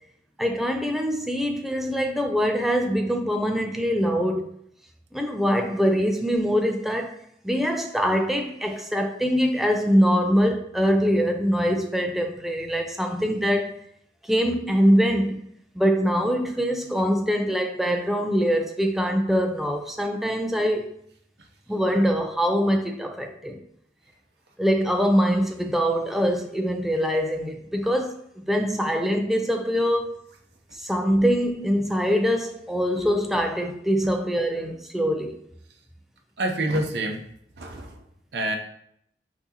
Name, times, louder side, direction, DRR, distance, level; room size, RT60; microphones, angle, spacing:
voice 1, 0.4-4.5 5.1-7.2 7.4-13.7 14.2-15.4 15.8-20.9 21.7-23.6 24.6-28.2 28.5-30.2 30.7-35.3, equal, ahead, 0.3 m, -23 dB
voice 2, 36.4-37.2 37.6-38.0 38.3-38.6, right 1 dB, 70° right, 0.7 m, -27 dB
5.9 x 2.8 x 2.8 m
head